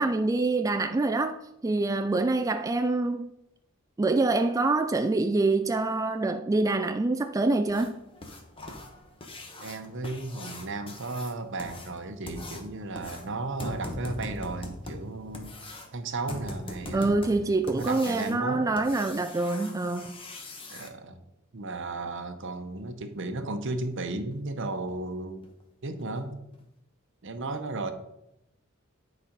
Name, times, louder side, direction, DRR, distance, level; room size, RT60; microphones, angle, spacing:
voice 1, 0.0-1.3 1.6-3.3 4.0-7.9 16.9-20.2, right 2 dB, 15° right, 0.3 m, -25 dB
sound 1, 7.7-20.9 23.2-23.3 23.7-23.8 24.3-24.4 24.9-25.0 25.4-25.6 26.0-26.1 26.5-26.6, left 1 dB, 25° left, 1.1 m, -41 dB
voice 2, 9.6-15.5 15.9-17.2 17.7-18.6 20.7-21.2 21.5-25.4 25.8-26.4 27.2-27.9, right 2 dB, 65° right, 0.9 m, -34 dB
9.9 x 4.2 x 5.2 m
head